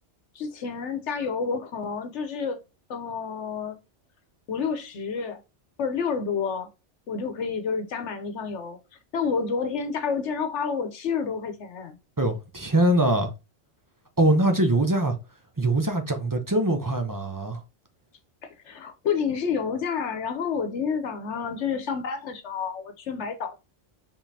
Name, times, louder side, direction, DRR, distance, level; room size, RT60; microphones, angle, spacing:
voice 1, 0.3-2.6 2.9-3.8 4.5-5.4 5.8-6.7 7.1-8.8 9.1-12.0 18.6-23.6, left 6 dB, 75° left, 1.1 m, -29 dB
voice 2, 12.2-13.3 14.2-15.1 15.6-17.6, right 1 dB, 20° right, 0.6 m, -22 dB
5.1 x 3.6 x 2.7 m
omnidirectional pair, 1.2 m